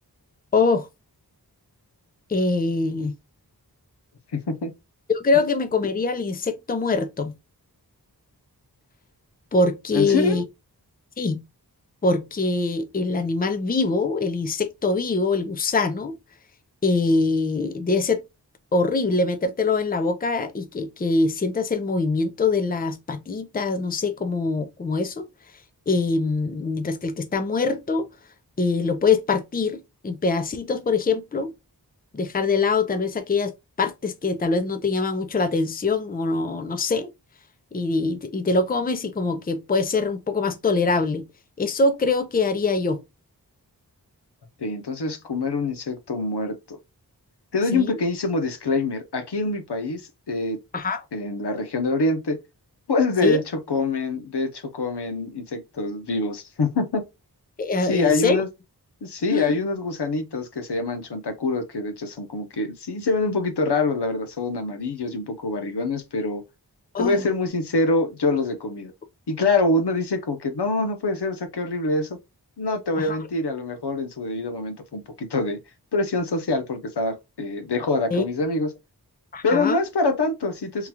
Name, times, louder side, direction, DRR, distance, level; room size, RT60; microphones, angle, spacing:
voice 1, 0.5-0.9 2.3-3.1 5.1-7.3 9.5-10.4 11.2-11.4 12.0-16.2 16.8-18.2 18.7-25.3 25.9-28.1 28.6-29.8 30.0-31.5 32.1-33.5 33.8-37.1 37.7-41.2 41.6-43.0 47.7-48.0 50.7-51.0 53.2-53.4 57.6-58.4 59.3-59.5 66.9-67.2 73.0-73.2 78.1-78.2 79.3-79.8, left 3 dB, 25° left, 0.5 m, -23 dB
voice 2, 4.3-4.7 9.9-10.4 44.6-46.8 47.5-50.6 51.1-52.4 52.9-53.4 53.7-57.0 57.8-58.5 59.0-66.4 67.0-68.9 69.3-72.2 72.6-75.6 75.9-78.7 79.4-80.9, left 3 dB, 85° left, 0.8 m, -25 dB
3.7 x 2.3 x 2.8 m
wide cardioid pair, 60°, 39 cm